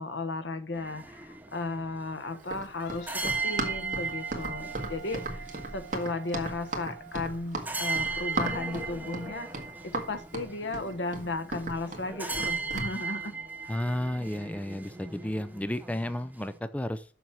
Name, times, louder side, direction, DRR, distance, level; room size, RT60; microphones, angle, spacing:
voice 1, 0.0-9.5 9.8-13.3, left 2 dB, 80° left, 10 dB, 1.2 m, -35 dB
sound 1, 0.7-16.6, right 4 dB, 10° right, 0.9 m, -38 dB
Run, 2.4-12.9, right 2 dB, 45° right, 1.8 m, -36 dB
Wind instrument woodwind instrument, 2.8-7.2, right 7 dB, 60° left, 1.5 m, -47 dB
voice 2, 13.7-17.0, left 1 dB, 10° left, 12 dB, 0.4 m, -32 dB
6.9 x 6.2 x 5.9 m, 0.37 s
head